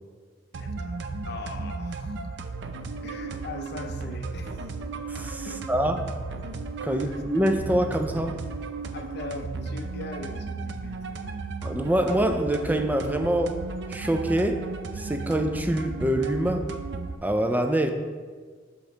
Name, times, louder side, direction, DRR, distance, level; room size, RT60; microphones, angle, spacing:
voice 1, 0.5-2.3 3.0-4.6 5.4-5.7 6.9-7.2 8.9-11.4, left 3 dB, 60° left, 7 dB, 0.5 m, -40 dB
sound 1, 0.5-17.2, right 3 dB, 65° right, 0.5 m, -35 dB
voice 2, 5.1-6.1 6.8-8.4 11.6-13.6 13.9-14.7 14.9-16.7 17.2-17.9, right 1 dB, 10° right, 6 dB, 0.4 m, -25 dB
7.2 x 5.2 x 3.9 m, 1.6 s
head